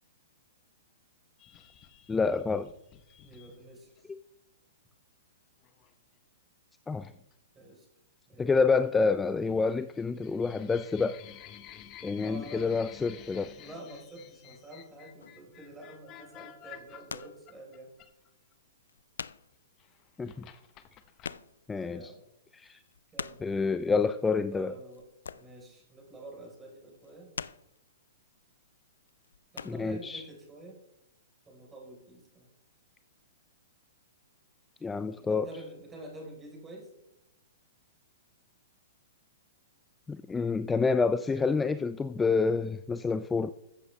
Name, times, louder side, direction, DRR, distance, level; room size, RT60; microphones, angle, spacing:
sound 1, 1.4-4.0 5.6-5.9 7.0-7.3 8.5-9.1 9.4-18.5 19.5-21.3, left 10 dB, 30° left, 1.0 m, -51 dB
voice 1, 2.1-2.7 6.9-7.1 8.4-11.2 12.0-13.5 20.2-20.5 21.7-22.0 22.5-22.8 23.4-24.7 29.6-30.2 34.8-35.5 40.1-43.5, left 4 dB, 10° left, 13 dB, 0.3 m, -28 dB
voice 2, 3.1-4.1 7.5-7.9 8.3-8.5 12.1-12.7 13.6-17.9 21.8-22.2 23.1-23.4 24.5-25.0 25.3-27.3 29.5-30.8 31.5-32.5 35.1-36.9, right 1 dB, 15° right, -1 dB, 4.0 m, -47 dB
sound 2, 15.2-15.5 16.7-17.5 17.8-17.9 18.5-18.6 18.8-19.6 19.9-20.0 20.2-20.3 20.6-21.8 22.2-22.3 22.7-23.6 24.9-25.7 26.0-26.4 26.9-27.9 28.5-28.8 29.1-29.8, left 6 dB, 85° left, 0.4 m, -43 dB
14.5 x 7.8 x 3.3 m, 0.86 s
hypercardioid pair, 130°, 0 cm